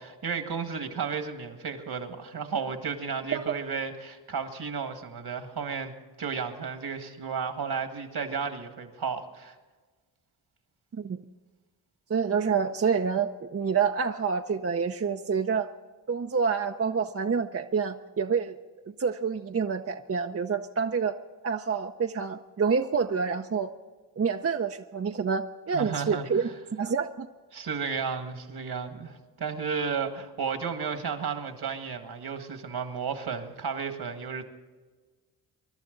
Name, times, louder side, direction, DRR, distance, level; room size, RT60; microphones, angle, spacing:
voice 1, 0.0-9.6 25.7-26.4 27.5-34.4, right 6 dB, 60° right, 7 dB, 1.9 m, -33 dB
voice 2, 12.1-15.7 16.1-18.5 18.8-21.2 21.4-23.7 24.2-27.3, right 6 dB, 35° right, 5 dB, 0.7 m, -28 dB
24.5 x 11.5 x 3.9 m, 1.3 s
cardioid pair, 55°, 42 cm